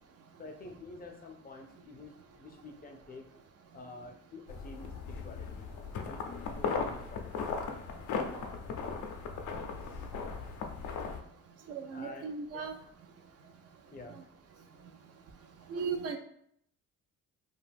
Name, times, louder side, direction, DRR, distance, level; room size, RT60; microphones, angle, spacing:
voice 1, 0.4-3.3 3.7-5.7 6.0-6.2 6.5-7.5 11.9-12.7 13.9-14.2, left 3 dB, 30° left, 3 dB, 0.5 m, -49 dB
sound 1, 4.5-11.2, left 5 dB, 85° left, 0.5 m, -37 dB
voice 2, 11.7-12.7 15.7-16.2, right 5 dB, 55° right, 6 dB, 0.5 m, -36 dB
2.6 x 2.3 x 3.4 m, 0.70 s
cardioid pair, 90°, 30 cm